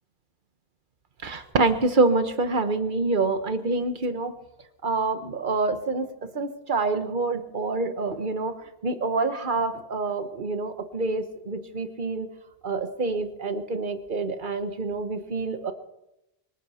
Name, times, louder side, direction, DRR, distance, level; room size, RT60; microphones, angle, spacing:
voice 1, 1.2-4.3 4.8-6.0 6.3-8.5 8.8-12.3 12.6-15.7, right 3 dB, 50° right, 9 dB, 1.3 m, -26 dB
24.5 x 9.1 x 5.7 m, 0.91 s
omnidirectional pair, 1.1 m